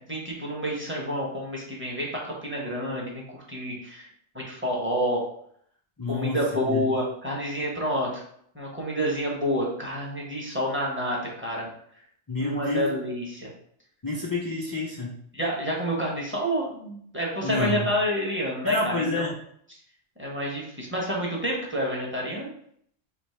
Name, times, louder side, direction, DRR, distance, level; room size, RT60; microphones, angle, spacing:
voice 1, 0.1-4.1 4.3-5.2 6.1-8.2 8.5-11.7 12.4-13.5 15.3-19.3 20.2-22.5, equal, 10° right, -3 dB, 0.9 m, -29 dB
voice 2, 6.0-6.4 6.7-6.8 12.3-12.9 14.0-15.1 17.4-17.9 18.6-19.3, left 2 dB, 35° left, -4 dB, 0.3 m, -28 dB
3.2 x 2.9 x 4.3 m, 0.67 s
omnidirectional pair, 1.2 m